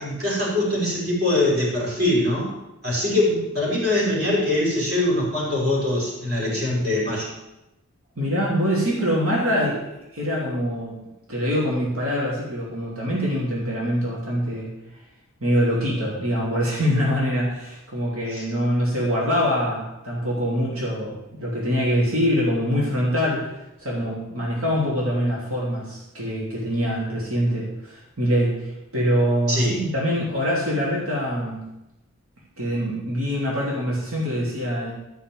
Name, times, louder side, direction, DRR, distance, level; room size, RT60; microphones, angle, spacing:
voice 1, 0.0-2.5 2.8-7.3 18.3-18.4 29.5-29.8, left 1 dB, 45° right, -4 dB, 4.7 m, -23 dB
voice 2, 8.2-9.8 10.1-10.9 11.3-14.7 15.4-23.5 23.8-31.6 32.6-34.9, equal, 80° right, -5 dB, 3.1 m, -24 dB
12.5 x 5.8 x 7.5 m, 0.94 s
head